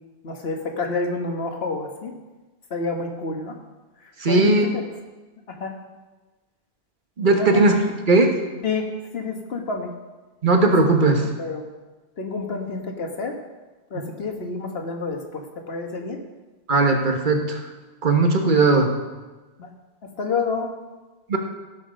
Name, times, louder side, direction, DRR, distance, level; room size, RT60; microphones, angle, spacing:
voice 1, 0.2-2.1 2.7-3.6 4.3-4.8 5.5-5.7 7.3-7.6 8.6-9.9 10.7-10.8 11.4-11.7 12.2-13.4 13.9-16.2 19.6-19.7 20.2-20.7, left 4 dB, 65° left, 4 dB, 1.6 m, -29 dB
voice 2, 4.2-4.7 7.2-7.7 8.1-8.4 10.4-11.3 16.7-17.6 18.0-18.9 21.3-21.4, right 3 dB, 50° right, 4 dB, 1.4 m, -18 dB
16.5 x 6.2 x 5.2 m, 1.2 s
omnidirectional pair, 1.1 m